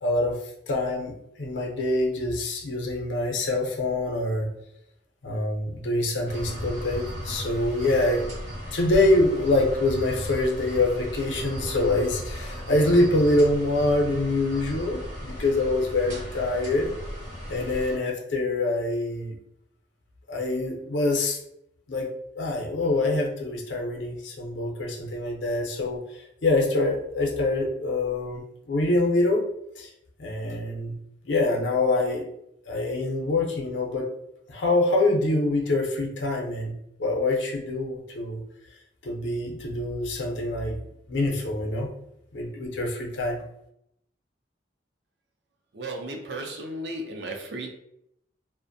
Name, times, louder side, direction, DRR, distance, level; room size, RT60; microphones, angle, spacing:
voice 1, 0.0-0.4 0.7-4.5 5.2-8.3 8.7-16.9 17.5-19.4 20.3-21.4 21.9-22.1 22.3-29.4 29.7-29.9 30.2-31.0 31.2-32.3 32.7-34.1 34.5-38.4 39.0-40.8 41.1-41.9 42.3-43.4, left 2 dB, 85° left, 0 dB, 0.6 m, -25 dB
sound 1, 6.3-18.0, equal, 40° right, 0.9 m, -36 dB
voice 2, 45.7-47.7, right 1 dB, 70° right, 3 dB, 0.5 m, -34 dB
2.4 x 2.1 x 2.6 m, 0.77 s
head